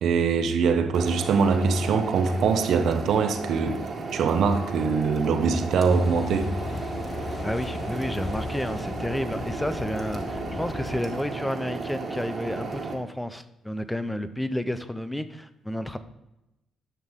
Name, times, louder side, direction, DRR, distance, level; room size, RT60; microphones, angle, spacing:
voice 1, 0.0-3.8 4.1-6.5, right 5 dB, 70° right, 7 dB, 1.0 m, -23 dB
sound 1, 0.9-12.9, right 3 dB, 45° right, 1.8 m, -34 dB
Car passing by / Idling / Accelerating revving vroom, 5.9-11.0, left 5 dB, 40° left, 0.4 m, -37 dB
voice 2, 7.4-16.0, left 1 dB, 5° left, 11 dB, 0.7 m, -31 dB
11.0 x 6.1 x 3.7 m, 0.93 s
cardioid pair, 90°, 0 cm